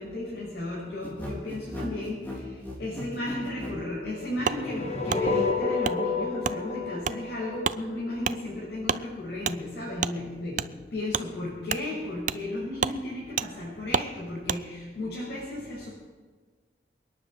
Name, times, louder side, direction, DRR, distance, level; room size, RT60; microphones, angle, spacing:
voice 1, 0.0-2.2 2.8-15.9, left 1 dB, 80° left, -7 dB, 6.2 m, -34 dB
sound 1, 1.0-3.8, left 1 dB, 10° left, 3.6 m, -37 dB
sound 2, 4.3-8.4, left 3 dB, 40° left, 1.4 m, -29 dB
Wood, 4.4-4.6 5.1-5.2 5.8-6.0 6.4-6.6 7.0-7.2 7.6-7.8 8.2-8.4 8.8-9.0 9.4-9.6 10.0-10.1 10.5-10.7 11.1-11.3 11.7-11.8 12.3-12.4 12.8-13.0 13.4-13.5 13.9-14.1 14.5-14.6, right 6 dB, 45° right, 0.4 m, -28 dB
28.5 x 10.0 x 4.7 m, 1.4 s
head